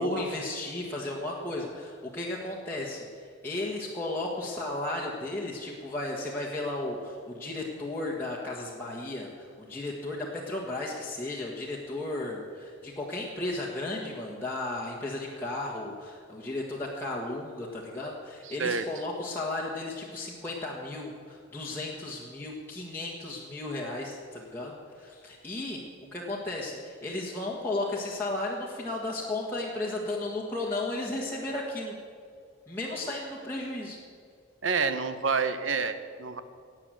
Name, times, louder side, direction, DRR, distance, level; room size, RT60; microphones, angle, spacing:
voice 1, 0.0-25.8 26.1-31.9 32.7-34.0, left 2 dB, 10° left, -5 dB, 1.6 m, -34 dB
voice 2, 18.5-18.8 34.6-36.4, right 5 dB, 80° right, 10 dB, 1.0 m, -28 dB
17.0 x 8.9 x 7.7 m, 2.2 s
head